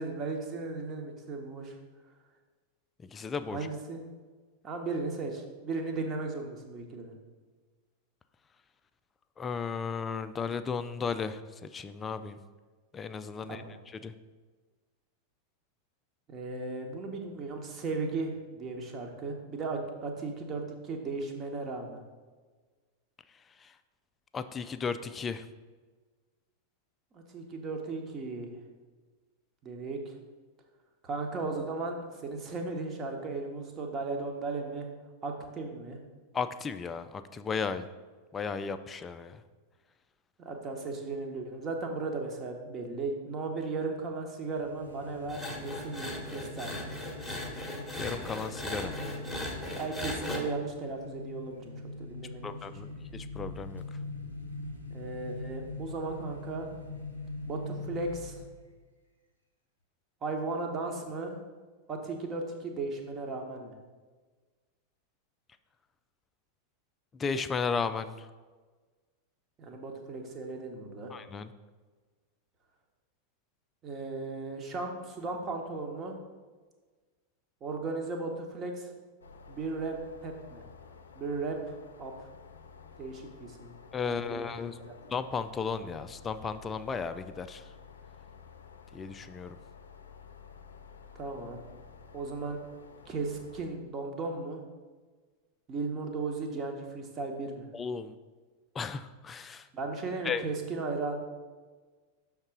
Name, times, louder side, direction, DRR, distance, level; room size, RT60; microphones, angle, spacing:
voice 1, 0.0-1.7 3.5-4.0 4.6-7.1 13.5-13.7 16.3-22.0 27.1-28.5 29.6-30.1 31.0-34.9 35.2-36.0 40.4-46.9 49.8-53.0 54.9-56.7 57.5-58.4 60.2-61.4 61.9-63.7 69.6-71.1 73.8-76.2 77.6-78.9 79.5-80.0 80.2-80.6 81.1-82.3 83.0-83.7 84.0-84.9 91.1-91.6 92.1-92.6 93.1-94.6 95.7-97.7 99.7-101.1, right 3 dB, 30° right, 3 dB, 1.1 m, -36 dB
voice 2, 3.1-3.6 9.4-12.4 12.9-14.1 23.6-23.7 24.3-25.5 36.3-37.9 38.3-39.4 48.0-49.0 52.4-53.8 67.1-68.3 71.1-71.5 83.9-84.8 85.1-87.7 88.9-89.6 97.7-98.2 98.7-99.7 100.2-100.4, left 5 dB, 20° left, 11 dB, 0.4 m, -35 dB
sound 1, 44.4-58.7, left 2 dB, 85° right, 0.9 m, -42 dB
sound 2, 45.3-50.4, left 1 dB, 5° right, 1.2 m, -38 dB
sound 3, 79.2-93.7, left 6 dB, 70° left, 0.5 m, -52 dB
6.5 x 3.6 x 5.9 m, 1.4 s
figure-of-eight pair, 90°, 0 cm